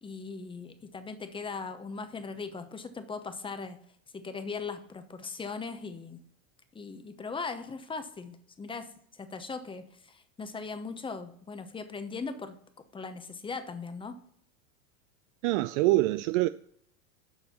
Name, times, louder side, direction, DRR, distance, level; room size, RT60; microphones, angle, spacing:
voice 1, 0.0-3.8 4.1-6.2 6.7-8.9 9.2-12.6 12.9-14.2, left 4 dB, 10° left, 0.9 m, -39 dB
voice 2, 15.4-16.5, right 18 dB, 60° right, 0.5 m, -25 dB
7.2 x 5.6 x 6.9 m
supercardioid pair, 120°, 41 cm